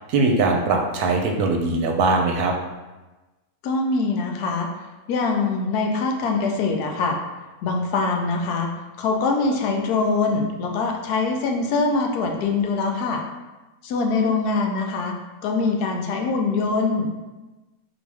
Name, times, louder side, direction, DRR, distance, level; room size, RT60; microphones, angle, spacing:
voice 1, 0.1-2.5, right 3 dB, 85° right, 2 dB, 1.1 m, -21 dB
voice 2, 3.6-4.7 5.1-7.2 7.6-8.7 9.0-13.2 13.8-15.1 15.4-17.1, left 3 dB, 85° left, 2 dB, 1.2 m, -23 dB
4.0 x 2.9 x 3.4 m, 1.1 s
omnidirectional pair, 1.6 m